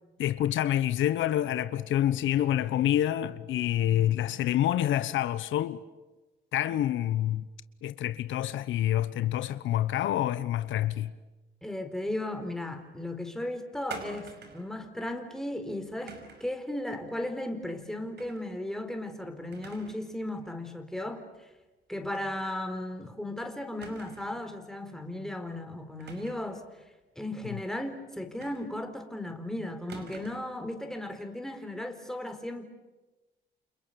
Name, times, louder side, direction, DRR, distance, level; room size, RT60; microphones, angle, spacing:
voice 1, 0.2-5.8 6.5-7.5 7.8-11.1 27.4-27.6, left 12 dB, 80° left, 1.1 m, -27 dB
voice 2, 11.6-21.5 21.9-26.6 27.2-32.7, left 1 dB, ahead, 4.4 m, -36 dB
sound 1, 13.9-14.7 16.1-16.5 18.2-18.5 18.9-19.0 19.5-20.1 20.4-20.5 22.1-22.3 22.6-22.7 23.8-24.4 26.0-26.6 28.4-29.0 29.9-30.6, right 5 dB, 60° right, 5.6 m, -46 dB
30.0 x 28.0 x 7.0 m
cardioid pair, 100°, 20 cm